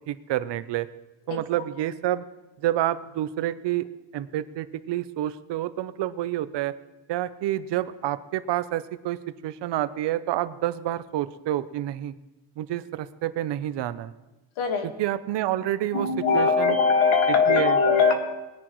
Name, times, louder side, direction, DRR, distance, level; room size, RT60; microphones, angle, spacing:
voice 1, 0.1-0.9 1.3-2.2 2.6-3.9 4.1-6.7 7.1-9.2 9.4-12.1 12.6-14.1 15.0-16.1 16.3-16.8 17.5-17.8, right 13 dB, 65° right, 14 dB, 0.7 m, -28 dB
voice 2, 14.6-14.9 15.9-18.1, left 5 dB, 80° left, 5 dB, 1.8 m, -21 dB
20.0 x 10.0 x 3.1 m, 1.0 s
cardioid pair, 160°, 47 cm